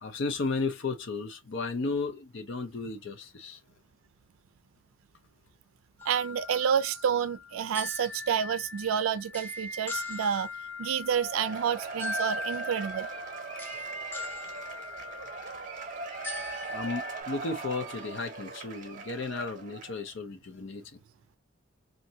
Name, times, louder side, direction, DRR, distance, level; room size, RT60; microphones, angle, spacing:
voice 1, 0.0-3.6 16.7-20.9, left 3 dB, 60° left, 0.5 m, -34 dB
sound 1, 6.0-17.2, left 2 dB, 10° left, 0.5 m, -40 dB
voice 2, 6.1-10.5 10.8-13.1, right 8 dB, 85° right, 0.4 m, -29 dB
Cheering / Applause / Crowd, 11.1-20.1, right 4 dB, 40° right, 0.7 m, -40 dB
2.7 x 2.5 x 2.7 m
head